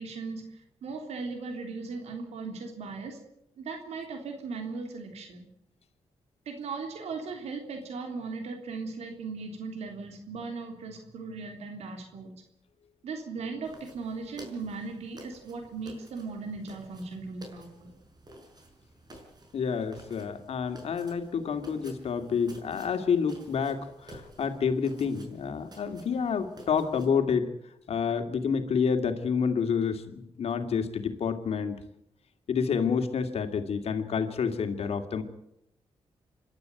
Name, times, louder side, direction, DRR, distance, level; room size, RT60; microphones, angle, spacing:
voice 1, 0.0-3.2 3.6-5.5 6.5-12.3 13.0-17.9, right 4 dB, 90° right, 4 dB, 3.5 m, -38 dB
sound 1, 13.6-27.2, right 1 dB, 40° right, 5.9 m, -52 dB
voice 2, 19.5-27.5 27.9-31.8 32.5-35.2, left 6 dB, 70° left, 7 dB, 2.6 m, -29 dB
26.5 x 12.5 x 9.4 m, 0.79 s
cardioid pair, 85°, 11 cm